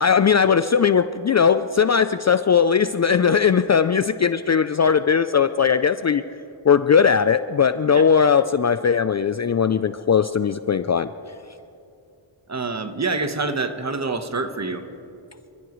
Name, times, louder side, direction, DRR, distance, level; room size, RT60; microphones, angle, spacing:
voice 1, 0.0-6.2 6.6-11.1, left 6 dB, 35° left, 12 dB, 0.4 m, -19 dB
voice 2, 12.5-14.8, right 3 dB, 35° right, 8 dB, 1.2 m, -26 dB
26.0 x 15.0 x 3.1 m, 2.6 s
cardioid pair, 65°, 50 cm